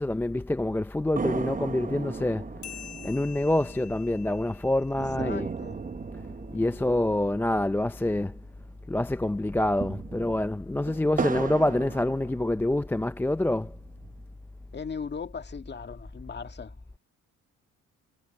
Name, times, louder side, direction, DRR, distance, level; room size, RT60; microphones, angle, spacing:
voice 1, 0.0-2.5 3.0-5.5 6.5-8.4 8.9-13.8, left 1 dB, 5° left, 0.4 m, -26 dB
sound 1, 1.2-8.8 9.0-9.1 9.6-12.9 13.4-14.4, right 5 dB, 25° right, 1.1 m, -37 dB
sound 2, 2.6-5.7, left 11 dB, 75° left, 3.5 m, -47 dB
voice 2, 4.9-5.9 14.7-16.8, left 5 dB, 35° left, 1.9 m, -38 dB
cardioid pair, 90°, 30 cm